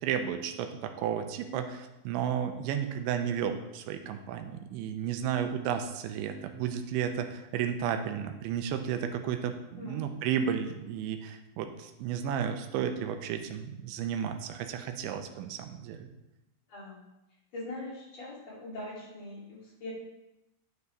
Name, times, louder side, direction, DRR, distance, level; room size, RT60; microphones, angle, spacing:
voice 1, 0.0-16.1, right 8 dB, 85° right, 6 dB, 2.9 m, -33 dB
voice 2, 9.7-10.1 16.7-17.0 17.5-19.9, left 1 dB, 40° left, -6 dB, 3.5 m, -42 dB
9.6 x 9.4 x 3.3 m, 0.92 s
omnidirectional pair, 5.4 m